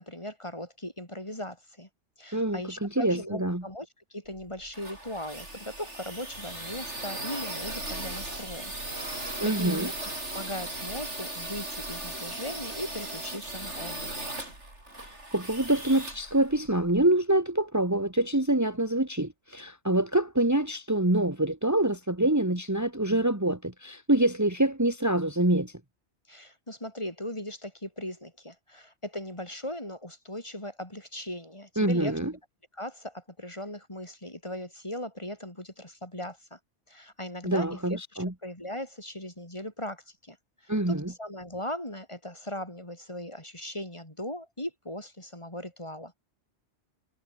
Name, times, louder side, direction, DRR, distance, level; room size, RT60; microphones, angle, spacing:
voice 1, 0.0-1.9 2.2-8.7 9.1-14.2 26.3-32.2 32.7-36.6 36.9-37.8 38.1-40.4 40.6-46.1, left 1 dB, 25° left, 4.9 m, -39 dB
voice 2, 2.3-3.6 9.4-9.9 15.3-25.7 31.8-32.3 37.4-38.3 40.7-41.1, right 1 dB, 15° right, 2.1 m, -26 dB
sound 1, 4.3-17.1, right 1 dB, 90° right, 7.7 m, -38 dB
omnidirectional pair, 1.2 m